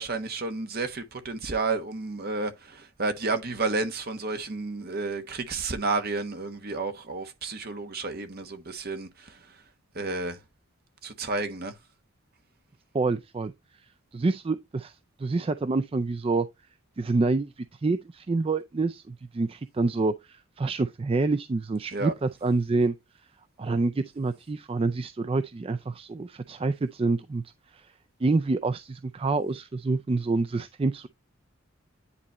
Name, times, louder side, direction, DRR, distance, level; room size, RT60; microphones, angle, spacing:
voice 1, 0.0-9.4 9.9-10.4 11.0-11.7 21.9-22.1, right 3 dB, 45° right, 1.2 m, -31 dB
voice 2, 12.9-13.5 14.1-16.5 17.0-22.9 23.6-27.4 27.7-27.9 28.2-31.1, right 3 dB, 25° right, 0.3 m, -27 dB
9.9 x 4.0 x 3.0 m
head